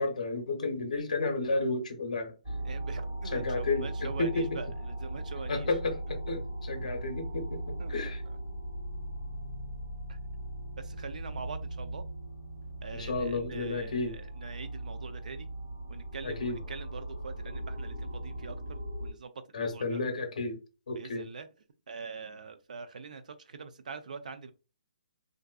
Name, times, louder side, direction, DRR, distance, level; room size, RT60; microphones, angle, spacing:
voice 1, 0.0-2.3 3.3-4.6 5.5-8.2 12.9-14.2 16.2-16.6 19.5-20.6 20.9-21.2, left 3 dB, 60° left, 0.8 m, -32 dB
sound 1, 2.4-19.1, right 1 dB, 30° right, 1.4 m, -38 dB
voice 2, 2.6-5.7 7.8-8.2 10.1-10.2 10.8-12.0 12.8-15.5 15.9-20.0 20.9-21.5 21.9-24.5, right 5 dB, 65° right, 0.5 m, -44 dB
3.6 x 2.5 x 2.3 m
hypercardioid pair, 175°, 4 cm